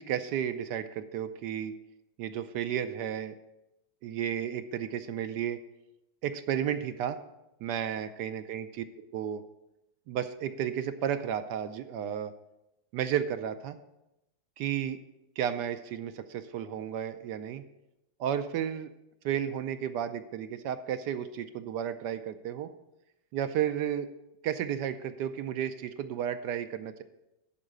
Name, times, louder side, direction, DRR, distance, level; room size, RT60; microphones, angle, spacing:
voice 1, 0.0-1.7 2.2-3.3 4.0-5.6 6.2-7.2 7.6-9.4 10.1-12.3 12.9-13.8 14.6-15.0 15.4-17.6 18.2-18.9 19.2-22.7 23.3-24.1 24.4-27.0, right 9 dB, 75° right, 10 dB, 1.1 m, -33 dB
11.0 x 4.8 x 6.5 m, 0.91 s
omnidirectional pair, 2.1 m